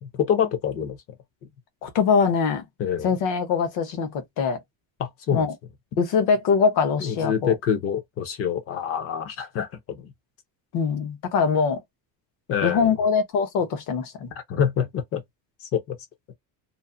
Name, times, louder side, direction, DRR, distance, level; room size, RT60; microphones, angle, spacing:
voice 1, 0.0-1.0 2.8-3.1 5.0-5.5 7.0-10.1 12.5-12.9 14.5-15.2 15.6-16.0, left 8 dB, 35° left, 0.5 m, -26 dB
voice 2, 1.8-2.7 3.0-4.6 5.3-5.5 6.0-7.6 10.7-11.8 12.6-14.3, left 5 dB, 60° left, 1.1 m, -23 dB
2.6 x 2.4 x 2.4 m
cardioid pair, 175°, 41 cm